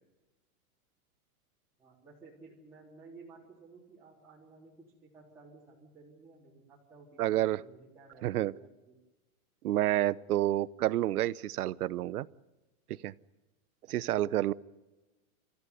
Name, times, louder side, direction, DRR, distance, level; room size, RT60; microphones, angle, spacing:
voice 1, 1.8-9.0 13.9-14.3, right 4 dB, 5° right, -7 dB, 3.5 m, -55 dB
voice 2, 7.2-7.6 8.2-8.5 9.6-12.3 13.0-13.1 13.9-14.5, right 14 dB, 85° right, 19 dB, 0.9 m, -29 dB
27.5 x 14.0 x 9.6 m, 1.1 s
supercardioid pair, 165°, 43 cm